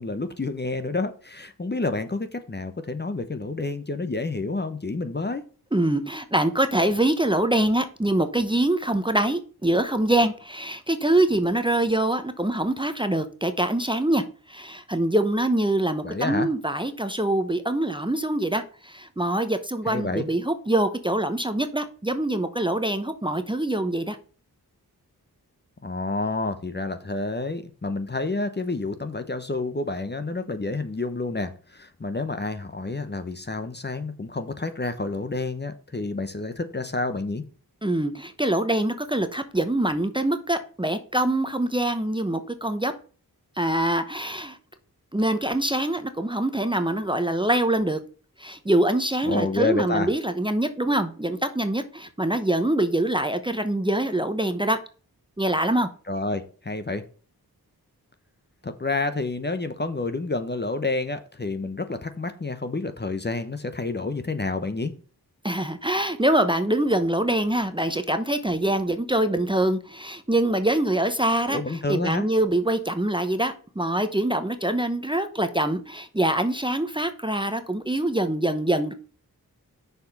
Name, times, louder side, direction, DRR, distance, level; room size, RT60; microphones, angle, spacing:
voice 1, 0.0-5.4 16.0-16.5 19.9-20.3 25.8-37.4 49.3-50.1 56.1-57.0 58.6-64.9 71.5-72.2, left 3 dB, 25° left, 9 dB, 0.9 m, -29 dB
voice 2, 5.7-14.2 14.5-24.2 37.8-42.9 43.6-44.6 45.1-48.0 48.4-54.8 55.4-55.9 65.4-78.9, right 1 dB, 15° right, 9 dB, 0.9 m, -24 dB
6.6 x 4.9 x 5.3 m, 0.39 s
cardioid pair, 55°, 38 cm